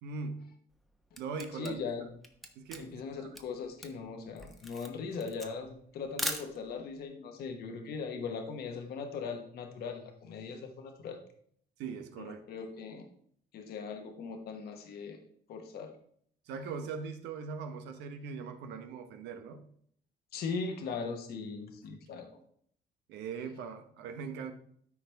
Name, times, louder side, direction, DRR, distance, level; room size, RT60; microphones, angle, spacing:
voice 1, 0.0-0.4 1.2-1.8 2.6-3.3 11.8-12.4 16.5-19.6 23.1-24.5, right 5 dB, 85° right, 7 dB, 1.1 m, -40 dB
Camera, 0.7-6.9, equal, ahead, 1.0 m, -41 dB
voice 2, 1.5-2.1 2.8-11.2 12.2-13.1 13.5-15.2 15.5-15.9 20.3-22.4, left 5 dB, 65° left, 4 dB, 1.3 m, -39 dB
13.0 x 4.8 x 3.4 m, 0.63 s
cardioid pair, 110°, 17 cm